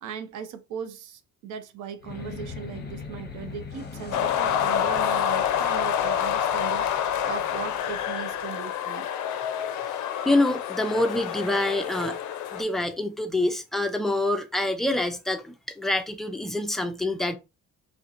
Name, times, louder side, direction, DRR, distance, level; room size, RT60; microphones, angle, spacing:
voice 1, 0.0-9.1 11.9-12.1, right 7 dB, 85° right, 0.6 m, -38 dB
sound 1, 2.0-8.6, left 4 dB, 35° left, 0.7 m, -41 dB
sound 2, 4.1-12.6, left 9 dB, 70° left, 0.4 m, -27 dB
voice 2, 9.9-12.2 12.5-17.4, left 1 dB, ahead, 0.4 m, -26 dB
2.7 x 2.1 x 2.5 m
cardioid pair, 90°, 30 cm